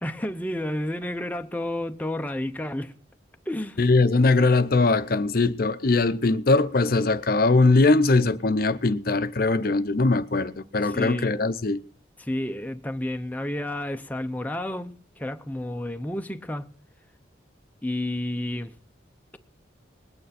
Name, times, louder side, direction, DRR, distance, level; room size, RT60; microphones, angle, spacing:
voice 1, 0.0-2.9 3.5-3.8 10.8-11.4 12.2-16.7 17.8-18.7, left 1 dB, 10° left, 0.7 m, -31 dB
voice 2, 3.8-11.8, left 3 dB, 50° left, 0.7 m, -21 dB
20.5 x 9.2 x 4.2 m
head